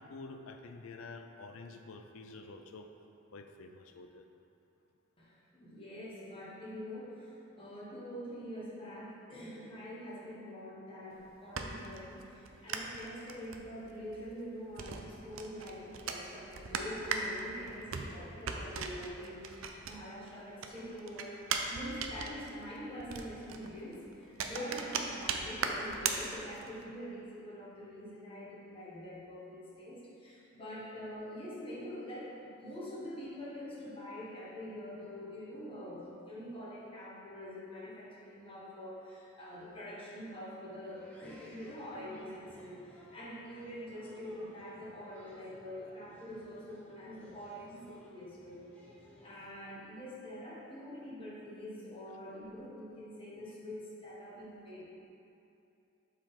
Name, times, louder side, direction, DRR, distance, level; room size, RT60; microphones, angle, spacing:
voice 1, 0.0-2.9 3.3-4.3, left 3 dB, 80° left, 6 dB, 0.5 m, -48 dB
voice 2, 5.2-21.4 21.7-48.6 49.2-54.8, equal, 25° left, -7 dB, 1.5 m, -45 dB
sound 1, 11.1-20.3 20.6-26.8, right 5 dB, 75° right, 0.5 m, -39 dB
sound 2, 40.9-49.5, equal, 5° left, 1.0 m, -59 dB
7.6 x 4.5 x 3.7 m, 2.7 s
head